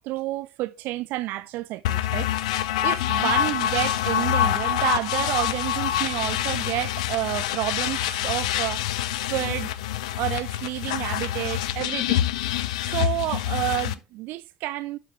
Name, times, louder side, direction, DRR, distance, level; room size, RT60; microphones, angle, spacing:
voice 1, 0.0-2.3 2.8-8.8 9.3-9.7 10.2-12.2 12.8-15.0, right 17 dB, 65° right, 0.5 m, -29 dB
sound 1, 1.8-13.9, left 12 dB, 75° left, 0.5 m, -26 dB
11.5 x 5.7 x 3.1 m
hypercardioid pair, 55°, 4 cm